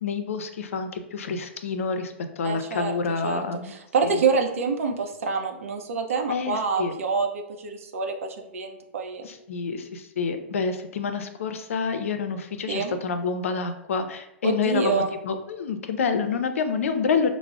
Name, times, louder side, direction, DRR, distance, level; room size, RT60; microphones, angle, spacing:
voice 1, 0.0-3.7 4.0-4.2 6.3-6.9 9.2-17.3, left 5 dB, 80° left, 8 dB, 0.4 m, -28 dB
voice 2, 2.4-2.9 3.2-9.3 12.7-12.9 14.4-15.1, right 5 dB, 80° right, 4 dB, 0.6 m, -27 dB
4.8 x 2.0 x 2.3 m, 0.84 s
hypercardioid pair, 120°, 7 cm